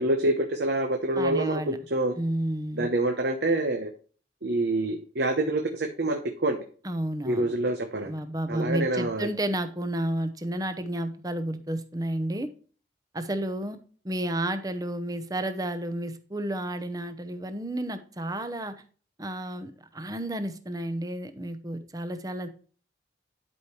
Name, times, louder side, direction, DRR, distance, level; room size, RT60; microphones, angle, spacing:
voice 1, 0.0-2.1 2.8-3.9 4.4-6.6 7.2-8.1 8.5-9.3, right 2 dB, 70° right, 4 dB, 1.0 m, -26 dB
voice 2, 1.1-1.8 2.2-2.9 6.8-7.6 8.0-12.5 13.1-13.8 14.0-18.7 19.2-22.5, right 1 dB, 20° right, 9 dB, 0.8 m, -31 dB
11.5 x 5.0 x 3.1 m, 0.42 s
head